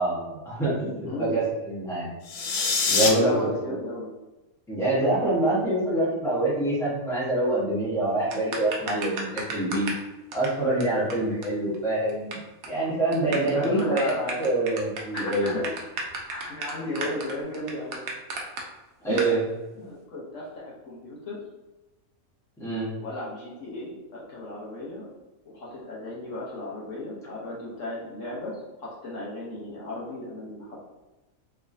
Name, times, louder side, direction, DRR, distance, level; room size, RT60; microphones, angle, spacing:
voice 1, 0.0-2.1 2.9-3.3 3.6-3.8 4.7-9.9 10.3-12.4 12.7-14.1 14.4-15.5 19.0-19.4 22.6-22.9, right 2 dB, ahead, -8 dB, 1.0 m, -25 dB
voice 2, 1.0-1.4 3.0-4.1 13.2-14.4 15.1-16.0 16.3-18.0 19.1-19.3 19.8-21.4 23.0-25.1 25.4-30.8, left 1 dB, 65° left, -5 dB, 1.2 m, -34 dB
sound 1, 2.2-3.1, left 5 dB, 85° left, 0.4 m, -24 dB
sound 2, 8.3-10.0 10.3-10.5 10.8-10.9 11.1-11.2 11.4-11.5 11.7-12.3 12.6-12.8 13.1-18.6 19.2-19.3, right 3 dB, 90° right, 1.1 m, -33 dB
3.4 x 3.1 x 2.6 m, 1.1 s
omnidirectional pair, 1.5 m